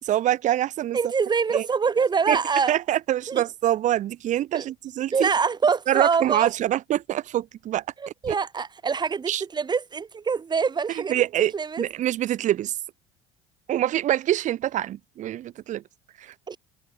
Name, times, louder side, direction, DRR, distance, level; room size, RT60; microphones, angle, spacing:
voice 1, 0.0-1.0 1.5-1.7 2.3-2.4 2.7-5.3 5.9-7.8 8.3-8.4 9.3-9.4 11.0-11.5 11.8-12.7 13.7-15.8 16.2-16.3, right 12 dB, 55° right, 3.2 m, -25 dB
voice 2, 0.9-2.7 3.3-3.4 4.5-4.6 5.1-6.5 8.0-11.2 11.5-11.8 16.5-16.6, right 5 dB, 30° right, 4.6 m, -25 dB
supercardioid pair, 85°, 15 cm